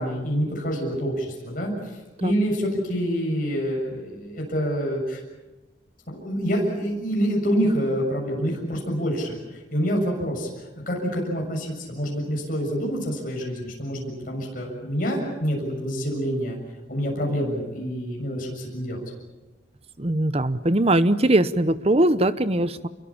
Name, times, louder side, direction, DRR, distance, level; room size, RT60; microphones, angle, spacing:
voice 1, 0.0-5.2 6.1-9.4 9.7-10.5 10.7-16.6 16.9-19.0, equal, 45° left, -1 dB, 7.1 m, -27 dB
voice 2, 20.0-22.9, right 1 dB, 30° right, 13 dB, 0.9 m, -21 dB
28.0 x 23.0 x 7.3 m, 1.1 s
head